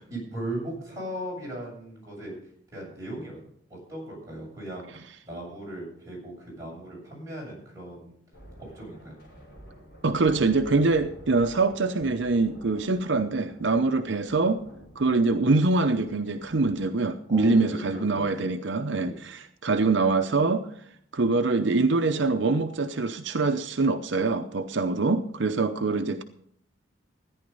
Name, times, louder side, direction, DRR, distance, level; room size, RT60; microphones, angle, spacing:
voice 1, 0.1-2.4 2.7-3.4 3.7-4.9 5.2-8.1 8.7-9.1 13.7-13.8 17.3-18.3 19.0-19.1, right 1 dB, 15° right, -4 dB, 7.4 m, -37 dB
sound 1, 8.3-16.8, equal, 50° left, 7.6 m, -50 dB
voice 2, 10.0-14.6 15.0-20.7 21.1-26.2, right 3 dB, 75° right, 7 dB, 0.8 m, -24 dB
14.0 x 10.5 x 5.4 m, 0.65 s
head